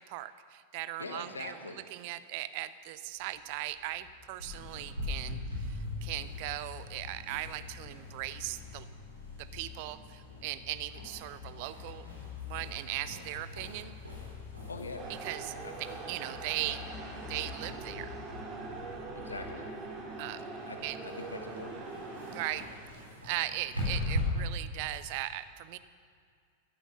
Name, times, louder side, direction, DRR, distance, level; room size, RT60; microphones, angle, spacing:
voice 1, 0.0-8.8 9.4-12.1 12.4-13.9 15.2-16.8 17.2-18.1 20.2-20.4 20.8-21.0 22.3-22.7 23.2-25.8, right 15 dB, 45° right, 14 dB, 0.6 m, -38 dB
voice 2, 1.0-1.8 14.7-15.1 15.6-15.7 19.1-19.6 20.7-21.8, left 3 dB, 75° left, 6 dB, 1.3 m, -43 dB
sound 1, 3.2-19.6, left 7 dB, 45° left, 1.2 m, -48 dB
sound 2, 4.4-24.2, left 1 dB, 85° right, 4.0 m, -43 dB
sound 3, 15.0-22.5, right 3 dB, 30° right, 2.5 m, -42 dB
13.0 x 10.5 x 6.8 m, 2.2 s
figure-of-eight pair, 90°, 0 cm